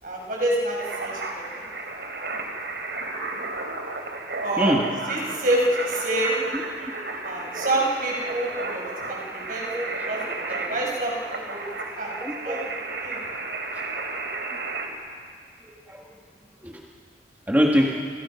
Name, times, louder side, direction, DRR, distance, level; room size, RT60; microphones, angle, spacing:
voice 1, 0.0-1.7 4.4-4.7 5.1-6.4 7.2-9.6 10.1-11.1 11.5-11.6 12.0-12.1 12.4-12.6 13.0-13.2, right 1 dB, 50° right, -2 dB, 6.3 m, -27 dB
sound 1, 0.8-14.9, right 3 dB, 75° right, 3.7 m, -33 dB
voice 2, 12.2-12.6 15.6-16.1 16.6-16.8 17.5-17.9, equal, 10° right, -2 dB, 1.8 m, -23 dB
29.5 x 28.0 x 5.8 m, 2.1 s
head